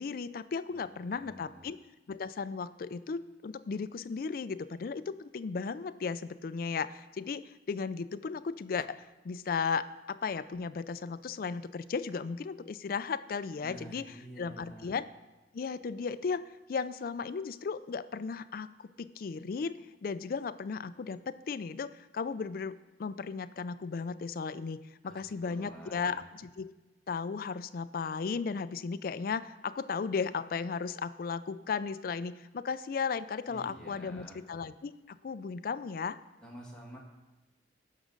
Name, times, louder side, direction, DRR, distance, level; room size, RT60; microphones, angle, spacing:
voice 1, 0.0-1.8 2.1-14.0 14.4-15.1 15.5-16.4 16.7-19.7 20.0-26.7 27.1-36.2, left 5 dB, 55° left, 14 dB, 0.4 m, -35 dB
voice 2, 0.7-1.6 13.6-14.9 25.0-26.2 33.5-34.4 36.4-37.0, right 1 dB, 5° left, -3 dB, 1.8 m, -49 dB
16.0 x 6.2 x 3.9 m, 1.1 s
head